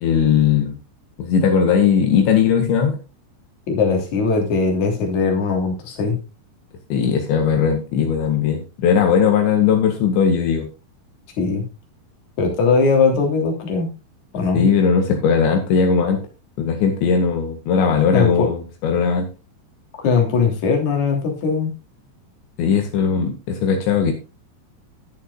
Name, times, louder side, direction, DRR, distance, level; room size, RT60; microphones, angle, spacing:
voice 1, 0.0-0.8 1.2-3.0 6.9-10.7 14.5-16.2 16.6-19.3 22.6-24.1, left 6 dB, 75° left, 4 dB, 4.0 m, -18 dB
voice 2, 3.7-6.2 11.4-11.7 12.4-13.9 14.3-14.6 18.1-18.5 20.0-21.7, left 4 dB, 45° left, 2 dB, 4.1 m, -19 dB
21.0 x 7.2 x 2.4 m, 0.29 s
omnidirectional pair, 5.2 m